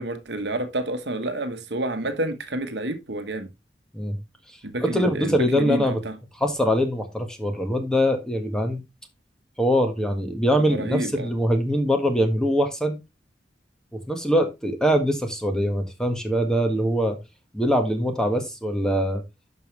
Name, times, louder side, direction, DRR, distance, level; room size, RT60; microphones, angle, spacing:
voice 1, 0.0-3.5 4.6-6.1 10.7-11.3, right 1 dB, 70° right, 1.3 m, -29 dB
voice 2, 4.8-6.0 6.4-8.8 9.6-13.0 14.1-17.2 17.5-19.2, equal, 5° left, 1.5 m, -23 dB
12.0 x 5.4 x 3.2 m
head